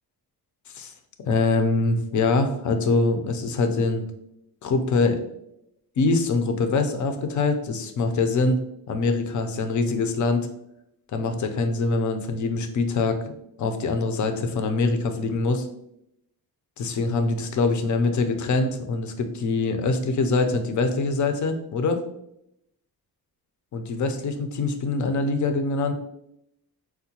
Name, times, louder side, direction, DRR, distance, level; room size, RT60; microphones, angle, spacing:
voice 1, 1.2-4.0 4.6-5.2 6.0-8.6 8.9-10.5 11.1-13.2 13.6-15.7 16.8-22.0 23.7-25.9, left 3 dB, 50° left, 7 dB, 0.5 m, -24 dB
4.5 x 2.1 x 2.8 m, 0.78 s
cardioid pair, 130°, 38 cm